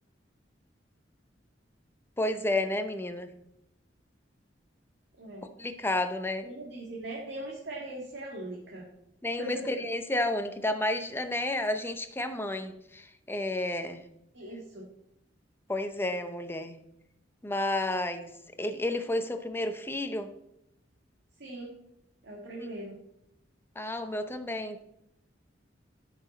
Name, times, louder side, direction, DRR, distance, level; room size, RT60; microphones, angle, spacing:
voice 1, 2.2-3.3 5.6-6.4 9.2-14.0 15.7-16.8 17.4-18.3 18.6-20.3 22.6-22.7 23.8-24.8, left 1 dB, 15° left, 8 dB, 0.7 m, -31 dB
voice 2, 6.4-8.9 9.4-9.5 14.3-14.8 21.4-21.7 22.2-23.0, right 1 dB, 65° right, -2 dB, 1.8 m, -40 dB
13.0 x 5.9 x 4.2 m, 0.81 s
head